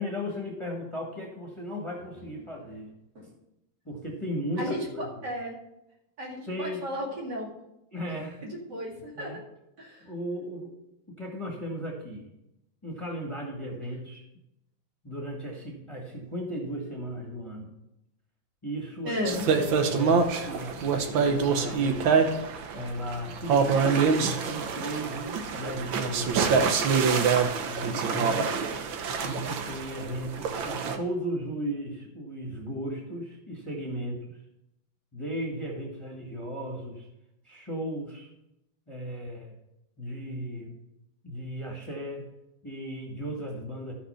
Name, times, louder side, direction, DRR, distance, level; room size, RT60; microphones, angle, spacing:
voice 1, 0.0-2.9 3.8-5.1 6.5-6.8 7.9-8.4 9.1-9.4 10.0-10.7 11.2-12.3 12.8-14.2 15.0-17.7 18.6-19.2 19.7-22.1 22.7-26.9 27.7-28.5 29.2-34.2 35.1-37.1 37.4-38.3 38.9-39.5 40.0-40.8 41.2-42.3 42.6-43.9, equal, 15° left, -2 dB, 1.5 m, -36 dB
voice 2, 4.6-5.6 6.2-7.5 8.4-9.4 9.8-10.1 19.0-19.4, left 1 dB, 55° right, -1 dB, 2.7 m, -34 dB
sound 1, 19.3-31.0, right 5 dB, 75° right, 1.6 m, -26 dB
13.0 x 5.8 x 5.6 m, 0.87 s
omnidirectional pair, 2.2 m